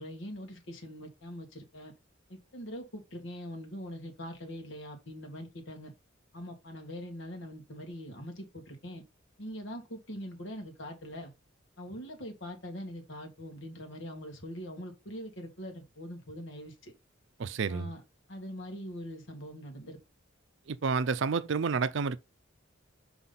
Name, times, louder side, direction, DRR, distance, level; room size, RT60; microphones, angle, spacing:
voice 1, 0.0-1.9 2.3-5.9 6.3-9.0 9.4-11.3 11.8-16.9 17.7-18.0 18.3-20.0, equal, 70° left, 2.2 m, -42 dB
voice 2, 17.4-17.9 20.7-22.2, right 5 dB, 70° right, 0.5 m, -30 dB
5.9 x 5.6 x 4.1 m
head